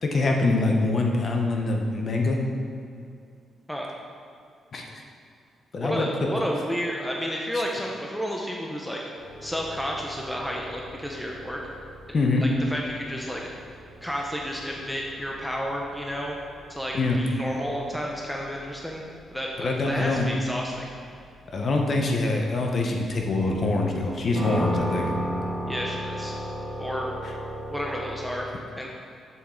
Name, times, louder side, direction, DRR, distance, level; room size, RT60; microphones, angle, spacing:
voice 1, 0.0-2.4 4.7-4.8 5.7-6.1 12.1-12.4 16.9-17.2 19.6-20.3 21.5-25.1, left 2 dB, 35° left, 1 dB, 0.9 m, -24 dB
voice 2, 5.8-9.0 9.4-11.6 12.4-13.4 14.0-16.3 16.7-19.0 19.3-20.9 25.7-26.3 26.8-27.1 27.7-28.5 28.8-28.9, equal, 5° left, -2 dB, 0.6 m, -31 dB
sound 1, 9.2-28.3, right 1 dB, 55° right, 1.7 m, -37 dB
7.4 x 7.2 x 3.8 m, 2.4 s
wide cardioid pair, 170°, 0 cm